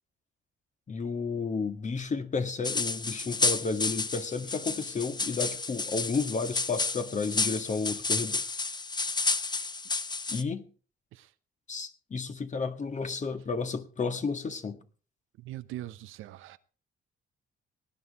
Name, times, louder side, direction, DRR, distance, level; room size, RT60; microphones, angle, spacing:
voice 1, 0.9-8.4 10.3-10.7 11.7-14.8, left 4 dB, 35° left, 1.8 m, -32 dB
sound 1, 2.6-10.4, left 3 dB, 20° left, 0.8 m, -31 dB
voice 2, 15.4-16.6, right 14 dB, 85° right, 0.8 m, -41 dB
18.5 x 10.0 x 4.1 m
cardioid pair, 90°, 20 cm